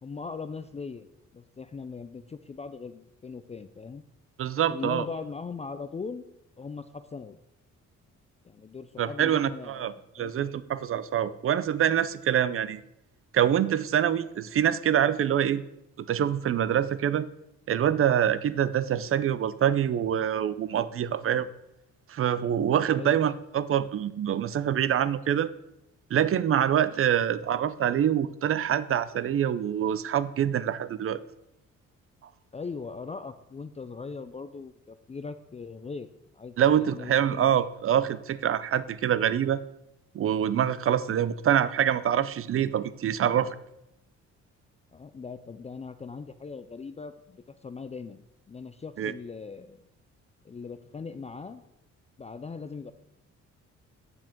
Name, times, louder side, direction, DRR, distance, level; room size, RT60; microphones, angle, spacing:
voice 1, 0.0-1.1 1.3-4.0 4.7-6.3 6.6-7.4 8.4-10.3 22.9-23.2 32.5-36.1 36.3-37.5 44.9-48.2 48.5-49.8 50.4-51.6 52.2-52.9, left 4 dB, 20° left, 10 dB, 0.4 m, -40 dB
voice 2, 4.4-5.1 9.0-12.8 13.3-15.6 16.1-17.3 17.7-21.5 22.1-25.5 26.1-31.2 36.6-39.6 40.1-43.5 49.0-49.1, right 9 dB, 45° right, 16 dB, 0.6 m, -25 dB
9.6 x 7.4 x 3.7 m, 0.84 s
cardioid pair, 90°, 30 cm